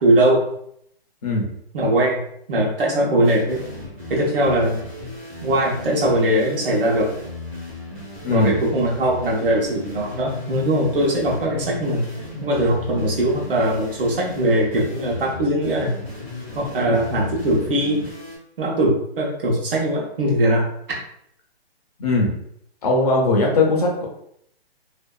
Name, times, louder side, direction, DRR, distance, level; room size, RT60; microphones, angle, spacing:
voice 1, 0.0-0.4 1.7-2.2 2.5-3.6 4.1-4.8 5.4-7.1 8.3-12.0 12.4-15.9 16.6-18.0 18.6-20.6, right 1 dB, 60° right, -3 dB, 0.9 m, -20 dB
sound 1, 3.2-18.4, left 2 dB, 10° right, 0.4 m, -36 dB
voice 2, 22.8-24.1, left 2 dB, 40° left, -2 dB, 0.6 m, -19 dB
2.6 x 2.3 x 2.2 m, 0.71 s
hypercardioid pair, 155°, 31 cm